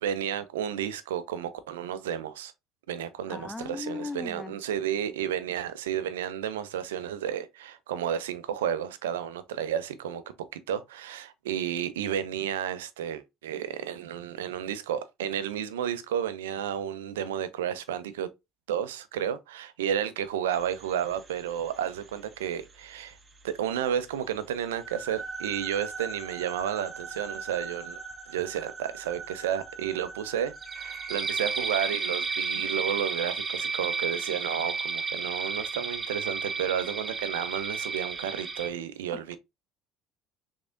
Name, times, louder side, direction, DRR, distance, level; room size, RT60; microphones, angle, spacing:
voice 1, 0.0-2.5 2.9-10.2 10.5-18.3 18.7-23.2 23.4-28.0 28.3-39.4, right 9 dB, 85° right, 0.4 m, -32 dB
voice 2, 3.3-4.5, left 3 dB, 20° left, 0.4 m, -37 dB
sound 1, 20.5-22.1 22.6-22.7 23.1-23.2 24.6-38.7, right 5 dB, 35° right, 0.7 m, -34 dB
3.5 x 3.3 x 2.4 m
hypercardioid pair, 65°, 0 cm